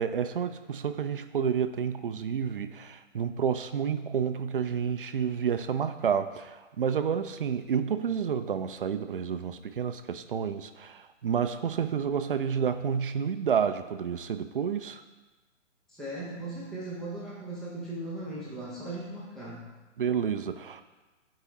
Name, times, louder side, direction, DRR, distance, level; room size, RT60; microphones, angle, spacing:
voice 1, 0.0-15.0 20.0-20.8, right 7 dB, 45° right, 10 dB, 0.5 m, -30 dB
voice 2, 15.9-19.6, right 2 dB, ahead, -8 dB, 0.6 m, -38 dB
12.5 x 4.7 x 3.1 m, 1.2 s
figure-of-eight pair, 135°, 38 cm